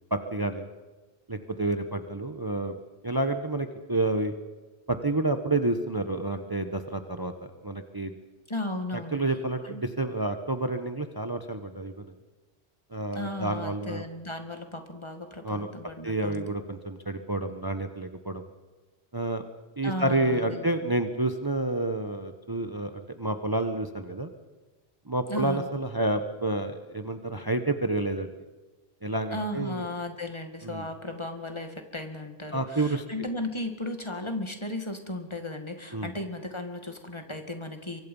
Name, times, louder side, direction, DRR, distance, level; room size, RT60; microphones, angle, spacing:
voice 1, 0.1-0.7 1.3-2.7 3.0-4.3 4.9-8.1 9.1-12.1 12.9-14.0 15.4-15.7 16.0-18.4 19.1-19.4 19.8-24.3 25.1-28.3 29.0-29.9 30.6-30.9 32.5-33.0 35.9-36.1, right 2 dB, 20° right, 7 dB, 1.1 m, -29 dB
voice 2, 8.5-9.2 9.6-9.8 13.1-16.5 19.8-20.9 25.3-25.7 29.3-38.0, left 1 dB, 25° left, 6 dB, 2.1 m, -35 dB
25.5 x 23.5 x 5.5 m, 1.2 s
omnidirectional pair, 1.1 m